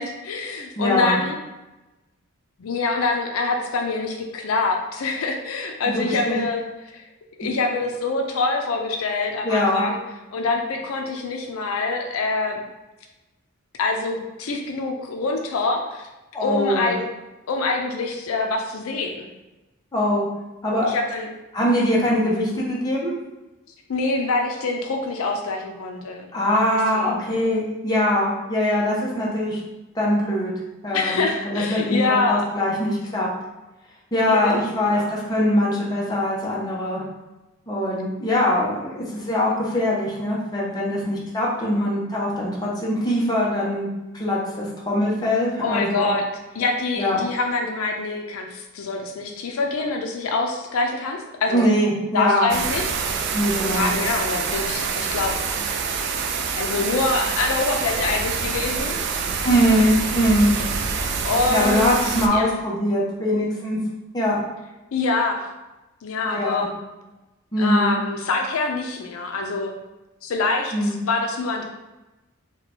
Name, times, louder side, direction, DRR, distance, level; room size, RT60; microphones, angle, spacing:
voice 1, 0.0-1.4 2.6-7.0 7.4-10.0 10.3-12.6 13.8-16.1 16.4-17.0 17.5-19.3 20.8-21.3 23.9-26.3 26.9-27.3 30.9-32.5 34.3-35.1 45.6-46.2 46.5-51.6 52.1-53.2 53.6-55.3 56.6-59.1 59.8-59.9 61.2-62.5 64.9-65.5 66.0-66.7 67.6-69.7 70.2-71.6, left 3 dB, 85° left, 3 dB, 0.4 m, -25 dB
voice 2, 0.8-1.2 5.8-6.4 7.4-7.5 9.4-9.8 16.3-16.9 19.9-20.3 20.6-20.9 21.5-23.1 26.3-29.6 29.9-30.5 30.8-33.3 34.1-37.0 37.7-43.9 44.1-46.1 47.0-47.2 51.5-52.5 53.3-54.0 59.4-60.6 61.5-63.8 64.1-64.4 66.2-66.7 67.5-68.0 70.7-70.9, left 1 dB, 20° left, -5 dB, 0.7 m, -22 dB
sound 1, 52.5-62.3, right 5 dB, 55° right, 0.3 m, -26 dB
2.8 x 2.2 x 4.1 m, 1.0 s
head